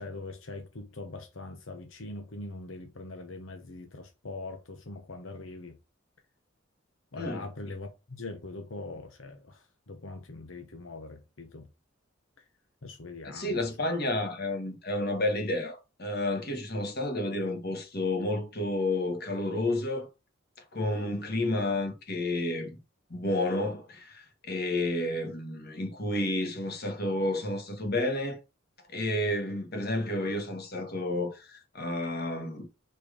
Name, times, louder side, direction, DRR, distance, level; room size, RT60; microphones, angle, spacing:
voice 1, 0.0-5.8 7.1-11.7 12.4-12.5 12.8-13.9, left 2 dB, 80° left, 1.1 m, -42 dB
voice 2, 7.2-7.7 13.2-20.1 20.7-22.8 23.1-28.4 28.9-32.7, left 1 dB, 50° left, 1.7 m, -31 dB
5.1 x 4.5 x 5.0 m
head